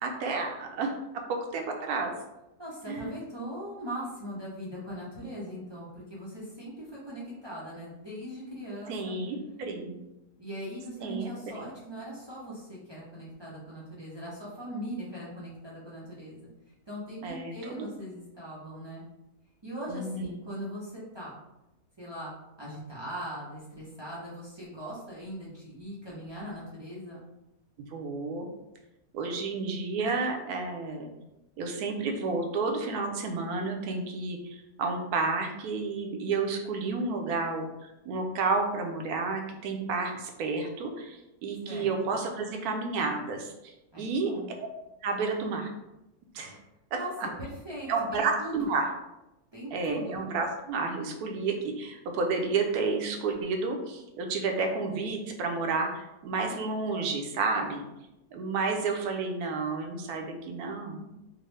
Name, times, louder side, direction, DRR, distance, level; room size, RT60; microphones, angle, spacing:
voice 1, 0.0-0.9 1.5-2.1 2.9-3.2 8.9-10.0 11.0-11.3 17.2-17.9 19.9-20.3 27.9-28.5 29.1-31.1 31.6-44.3 45.0-45.7 46.3-46.6 47.2-47.3 47.9-48.9 49.7-57.9 58.3-61.1, right 4 dB, 75° right, 3 dB, 1.1 m, -31 dB
voice 2, 2.6-8.9 10.4-19.0 19.6-21.4 22.0-27.2 41.7-42.2 43.9-44.5 46.9-47.1 47.4-48.8 49.5-50.2, equal, 45° right, -7 dB, 0.3 m, -40 dB
3.7 x 2.0 x 3.2 m, 0.93 s
omnidirectional pair, 1.7 m